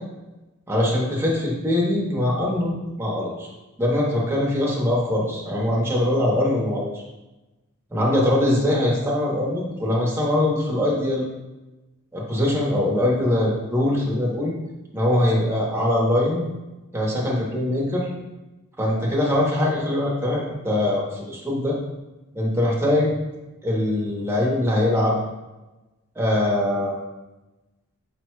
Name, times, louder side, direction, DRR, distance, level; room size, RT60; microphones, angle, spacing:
voice 1, 0.7-3.5 3.8-7.0 7.9-11.2 12.1-14.5 14.9-16.4 16.9-18.1 18.8-21.8 22.3-23.1 23.6-25.2 26.1-27.0, left 1 dB, 10° right, -4 dB, 0.9 m, -22 dB
5.3 x 2.2 x 4.5 m, 1.1 s
head